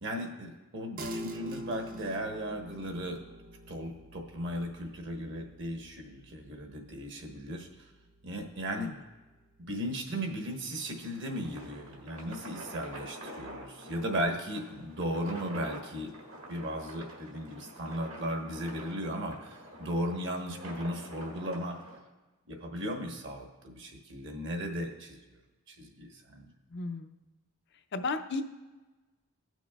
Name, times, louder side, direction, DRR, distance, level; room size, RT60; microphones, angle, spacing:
voice 1, 0.0-3.2 3.7-7.7 8.2-8.9 9.6-16.1 16.5-21.8 22.5-25.2 25.7-26.5, equal, 55° right, 3 dB, 1.1 m, -36 dB
sound 1, 1.0-10.7, equal, 40° right, 0.6 m, -45 dB
sound 2, 10.7-22.0, equal, 70° right, 1.7 m, -47 dB
voice 2, 26.7-27.1 27.9-28.4, left 3 dB, 50° left, 8 dB, 0.5 m, -33 dB
16.5 x 6.1 x 2.3 m, 1.2 s
head